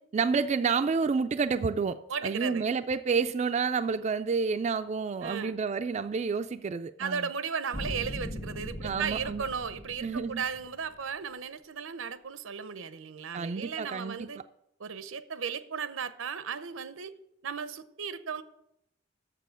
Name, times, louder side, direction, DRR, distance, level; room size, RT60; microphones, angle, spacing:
voice 1, 0.1-2.0 2.2-7.3 8.8-9.5 10.0-10.4 13.3-14.3, right 5 dB, 35° right, 9 dB, 0.3 m, -29 dB
voice 2, 2.1-2.6 5.2-5.6 7.0-14.4 14.8-17.1 17.4-18.4, right 6 dB, 85° right, 13 dB, 0.7 m, -35 dB
sound 1, 7.7-10.9, equal, 30° left, 1.2 m, -40 dB
7.5 x 6.8 x 8.2 m, 0.79 s
head